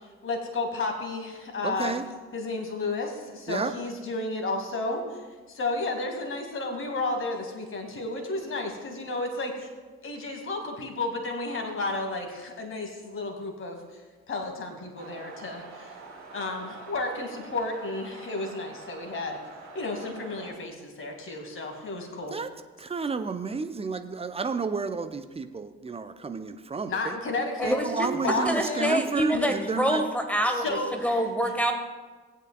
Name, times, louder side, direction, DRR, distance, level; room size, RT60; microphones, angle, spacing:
voice 1, 0.2-2.0 2.3-5.2 5.5-9.7 10.0-14.0 14.3-16.0 16.3-19.4 19.7-22.4 26.9-27.8 28.2-28.9 29.3-29.6 30.5-31.3, left 2 dB, 40° left, 3 dB, 2.2 m, -32 dB
voice 2, 1.6-2.0 3.5-3.7 22.3-22.5 22.8-27.1 27.7-30.0, right 4 dB, 20° right, 9 dB, 0.7 m, -31 dB
sound 1, 15.0-20.5, right 4 dB, 55° right, 2.1 m, -45 dB
voice 3, 27.6-30.8 31.0-31.7, equal, 5° left, 5 dB, 1.5 m, -26 dB
19.0 x 8.3 x 2.3 m, 1.4 s
figure-of-eight pair, 50°, 34 cm